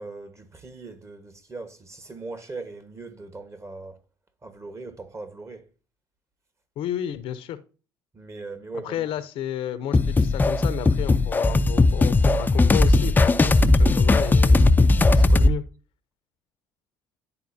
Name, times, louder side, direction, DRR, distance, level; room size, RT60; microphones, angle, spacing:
voice 1, 0.0-4.0 4.4-5.7 8.1-9.1, right 3 dB, 30° right, 1.3 m, -39 dB
voice 2, 6.8-7.6 8.8-15.6, left 11 dB, 65° left, 0.6 m, -32 dB
sound 1, 9.9-15.5, left 2 dB, 20° left, 0.4 m, -18 dB
10.5 x 4.2 x 2.7 m
hypercardioid pair, 60°, 10 cm